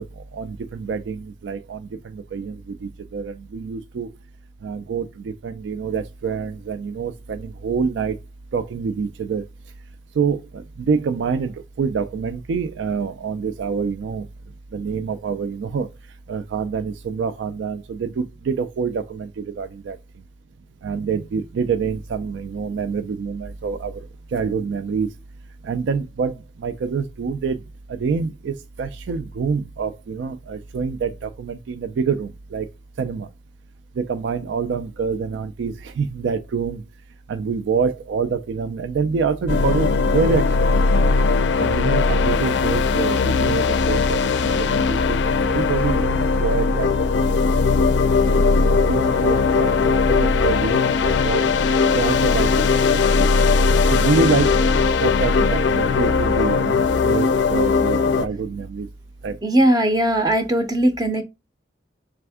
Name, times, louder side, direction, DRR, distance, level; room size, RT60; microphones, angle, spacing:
voice 1, 0.0-4.1 4.6-8.2 8.5-9.5 10.1-14.3 14.7-15.9 16.3-20.0 20.8-25.1 25.6-27.6 27.9-32.7 33.0-33.3 34.0-36.8 37.3-40.7 41.6-46.9 47.2-47.4 47.7-47.9 48.3-48.5 48.9-51.4 51.9-53.1 53.9-54.7 55.0-58.9 59.2-59.4, right 5 dB, 80° right, 0.3 m, -26 dB
sound 1, 39.5-58.3, left 4 dB, 75° left, 0.4 m, -19 dB
voice 2, 59.4-61.2, right 1 dB, 20° right, 0.5 m, -19 dB
3.4 x 3.4 x 3.4 m
head